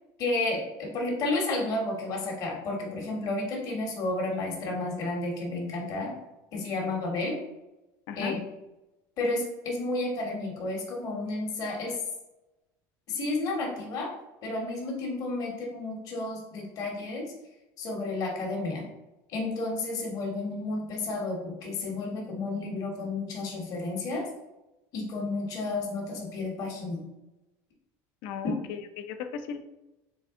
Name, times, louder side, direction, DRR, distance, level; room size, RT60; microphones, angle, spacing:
voice 1, 0.2-6.1 6.5-7.4 8.2-8.4 9.2-12.0 13.1-14.1 14.4-17.3 17.8-18.9 19.3-24.2 24.9-27.0, left 2 dB, 50° left, -1 dB, 1.2 m, -31 dB
voice 2, 28.2-29.6, left 7 dB, 70° left, 9 dB, 0.5 m, -36 dB
3.9 x 3.2 x 3.6 m, 1.0 s
cardioid pair, 140°, 8 cm